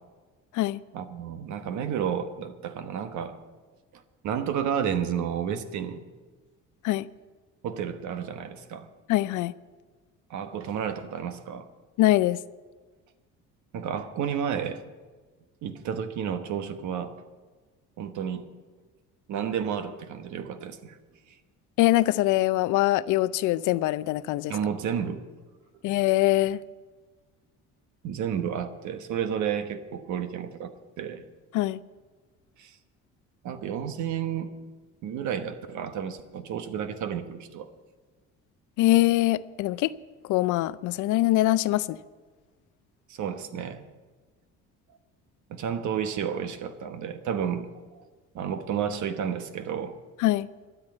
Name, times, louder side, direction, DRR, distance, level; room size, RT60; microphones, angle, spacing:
voice 1, 0.9-3.4 3.9-6.0 7.6-8.9 10.3-11.7 13.7-14.8 15.6-17.2 18.0-18.5 19.3-21.0 24.5-25.2 28.0-31.2 32.6-32.8 33.4-34.5 35.0-37.7 43.1-43.8 45.5-47.7 48.0-48.1 48.3-50.0, right 8 dB, 70° right, 1.2 m, -31 dB
voice 2, 9.1-9.5 12.0-12.4 21.8-24.5 25.8-26.6 31.5-31.8 38.8-40.0 40.3-42.0 50.2-50.5, left 16 dB, 75° left, 0.5 m, -23 dB
12.5 x 8.3 x 8.8 m
cardioid pair, 90°, 31 cm